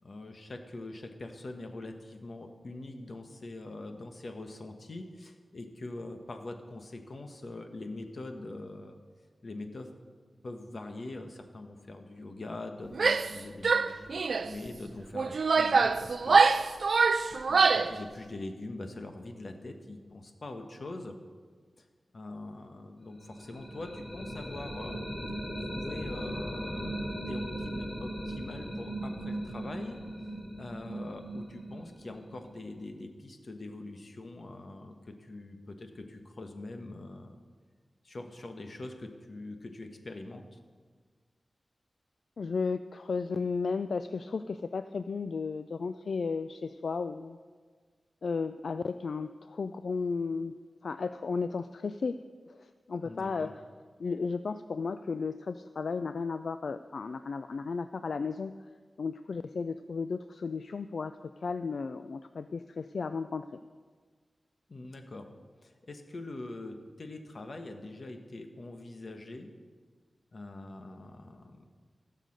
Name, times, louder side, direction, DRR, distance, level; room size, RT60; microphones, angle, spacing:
voice 1, 0.0-9.0 9.4-9.9 10.4-16.6 17.3-21.2 21.8-21.9 22.1-25.1 25.6-30.0 30.6-37.4 38.0-40.6 53.0-53.6 64.7-65.3 65.6-69.5 70.3-71.7, left 2 dB, 60° left, 5 dB, 1.3 m, -43 dB
Female speech woman speaking / Yell, 12.9-13.4 13.6-14.5 15.1-18.0, right 4 dB, 75° right, 0.4 m, -24 dB
sound 1, 23.2-33.0, right 1 dB, 45° left, 4.0 m, -38 dB
voice 2, 42.4-47.4 48.2-50.5 50.8-52.2 52.5-53.5 54.0-58.6 59.0-63.5, left 4 dB, 80° left, 10 dB, 0.3 m, -34 dB
16.0 x 6.6 x 6.5 m, 1.5 s
wide cardioid pair, 70°, 0 cm